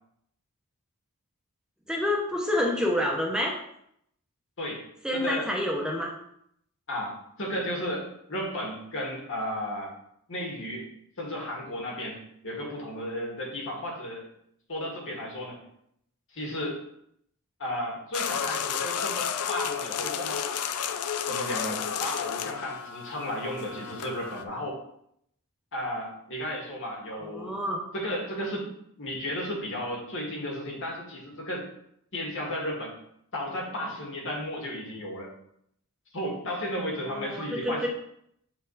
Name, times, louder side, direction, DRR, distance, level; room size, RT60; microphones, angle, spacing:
voice 1, 1.9-3.5 5.0-6.1 27.2-27.8 37.1-37.9, left 1 dB, 5° right, -2 dB, 0.9 m, -28 dB
voice 2, 4.6-5.5 6.9-9.9 10.3-10.9 11.2-14.3 14.7-15.6 16.3-16.8 17.6-20.4 21.3-24.8 25.7-27.6 27.9-28.7 29.0-31.7 32.1-33.0 33.3-35.3 36.1-37.9, equal, 60° left, -2 dB, 2.1 m, -34 dB
sound 1, 18.1-24.4, left 8 dB, 75° left, 0.5 m, -32 dB
7.5 x 4.5 x 4.1 m, 0.72 s
head